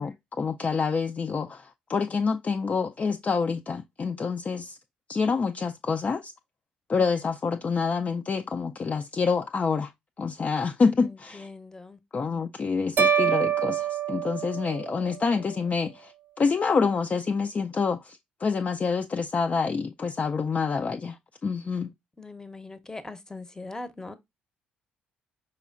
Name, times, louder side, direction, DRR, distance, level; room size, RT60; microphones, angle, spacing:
voice 1, 0.0-4.8 5.1-6.3 6.9-9.9 10.2-11.5 12.1-16.1 16.4-21.2 21.4-21.9, left 5 dB, 35° left, 0.4 m, -27 dB
voice 2, 11.0-12.0 22.2-24.2, left 3 dB, 15° left, 0.7 m, -41 dB
sound 1, 13.0-15.3, right 7 dB, 55° right, 0.6 m, -26 dB
4.9 x 4.2 x 2.4 m
hypercardioid pair, 55°, 4 cm